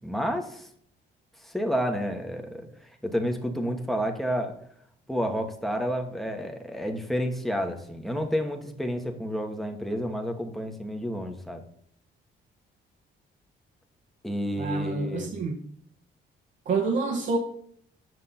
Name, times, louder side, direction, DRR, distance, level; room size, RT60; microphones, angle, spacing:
voice 1, 0.0-0.7 1.4-2.7 3.0-4.6 5.1-11.6 14.2-15.3, equal, ahead, 1.5 m, -30 dB
voice 2, 14.6-15.6 16.6-17.4, right 3 dB, 65° right, 1.4 m, -27 dB
8.0 x 6.3 x 4.4 m
cardioid pair, 90°, 20 cm